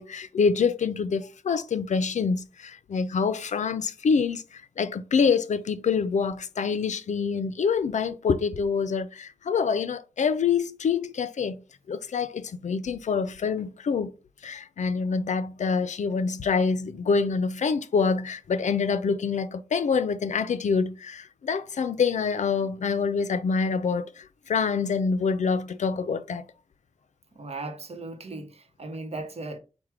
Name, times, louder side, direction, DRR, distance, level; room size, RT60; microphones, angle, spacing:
voice 1, 0.0-11.6 11.9-14.1 14.4-26.4, left 5 dB, 80° left, 0.4 m, -26 dB
voice 2, 27.3-29.6, right 2 dB, 60° right, 0.8 m, -37 dB
4.8 x 2.1 x 4.6 m
wide cardioid pair, 115°, 12 cm